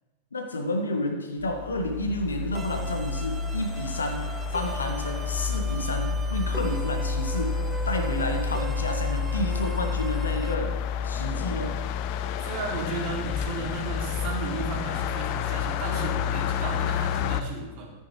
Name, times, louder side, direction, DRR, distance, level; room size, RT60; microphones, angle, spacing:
voice 1, 0.3-10.8 11.0-11.8, left 2 dB, 75° left, 5 dB, 1.3 m, -30 dB
sound 1, 1.4-17.4, left 6 dB, 45° left, 0.5 m, -29 dB
sound 2, 2.5-10.5, right 4 dB, 20° right, 0.7 m, -40 dB
voice 2, 12.5-18.0, right 3 dB, 45° right, -1 dB, 2.5 m, -34 dB
13.5 x 9.4 x 3.1 m, 1.3 s
figure-of-eight pair, 90°, 0 cm